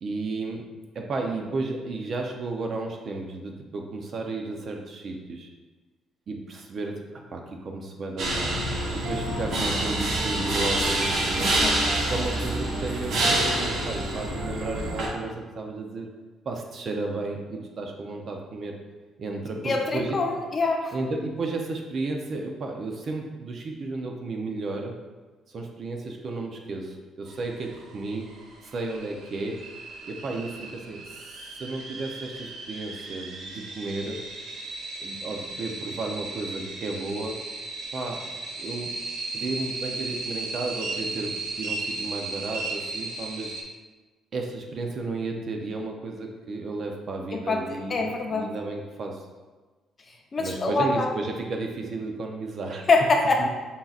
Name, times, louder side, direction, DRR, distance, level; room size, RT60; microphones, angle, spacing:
voice 1, 0.0-0.7 0.9-5.5 6.3-8.5 8.9-11.6 12.1-16.1 16.4-18.8 19.2-20.2 20.9-24.9 25.5-28.3 28.6-29.6 30.1-31.0 31.6-34.2 35.0-37.4 37.9-38.3 38.6-38.9 39.3-43.6 44.3-49.2 50.4-52.9 53.4-53.5, right 3 dB, 45° right, 2 dB, 0.6 m, -33 dB
sound 1, 8.2-15.1, right 1 dB, 60° right, 1.1 m, -26 dB
voice 2, 19.6-20.9 47.5-48.4 50.3-51.1 52.9-53.5, left 3 dB, 30° left, 2 dB, 0.6 m, -24 dB
sound 2, 27.3-43.6, right 3 dB, 80° right, 0.8 m, -36 dB
5.5 x 3.9 x 2.4 m, 1.3 s
cardioid pair, 130°, 0 cm